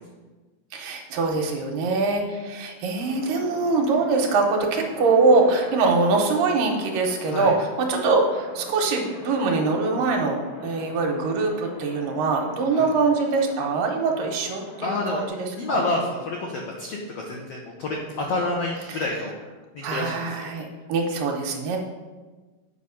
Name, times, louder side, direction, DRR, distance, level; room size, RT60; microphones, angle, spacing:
voice 1, 0.7-15.9 19.8-21.8, right 3 dB, 75° right, 2 dB, 2.5 m, -23 dB
sound 1, 3.0-15.3, left 2 dB, 55° left, 2.3 m, -41 dB
voice 2, 14.8-15.2 15.6-19.4 19.7-20.5, left 2 dB, 80° left, -1 dB, 1.4 m, -28 dB
8.1 x 5.3 x 5.7 m, 1.3 s
omnidirectional pair, 4.2 m